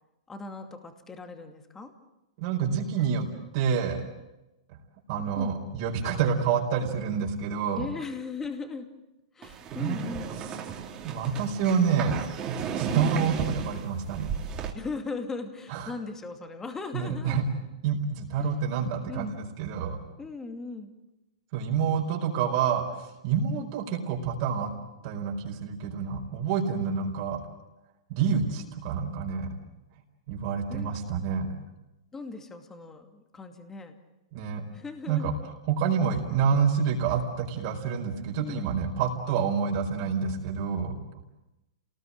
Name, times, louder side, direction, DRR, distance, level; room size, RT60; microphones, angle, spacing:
voice 1, 0.3-1.9 5.4-5.6 7.7-8.9 9.3-10.3 12.9-13.2 14.7-17.4 18.4-18.6 19.1-19.3 20.2-20.9 23.5-23.7 28.3-28.5 30.7-30.9 32.1-34.0 34.7-35.3 38.4-38.7, left 4 dB, 10° left, 6 dB, 2.5 m, -38 dB
voice 2, 2.4-3.3 3.5-4.0 5.1-7.9 9.7-10.0 11.0-12.2 12.5-14.3 15.7-15.9 16.9-17.4 17.8-20.0 21.5-22.8 23.2-24.7 25.0-27.4 28.1-29.5 30.3-31.5 34.3-34.6 35.1-35.3 35.7-40.9, right 6 dB, 45° right, 0 dB, 4.8 m, -28 dB
sound 1, 9.4-14.7, right 7 dB, 25° right, 3.2 m, -35 dB
28.0 x 20.0 x 8.8 m, 0.96 s
hypercardioid pair, 140°, 3 cm